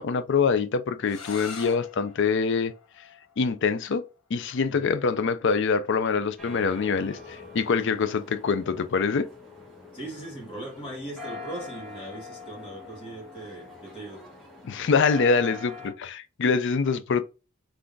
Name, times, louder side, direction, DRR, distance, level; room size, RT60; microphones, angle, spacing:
voice 1, 0.0-2.7 3.4-4.0 4.3-9.3 14.6-17.2, left 5 dB, 60° left, 0.4 m, -25 dB
sound 1, 1.0-6.8, left 6 dB, 90° left, 1.0 m, -46 dB
sound 2, 6.4-15.9, left 4 dB, ahead, 1.6 m, -43 dB
voice 2, 9.9-14.2, right 1 dB, 25° left, 1.8 m, -39 dB
3.8 x 3.3 x 3.7 m
head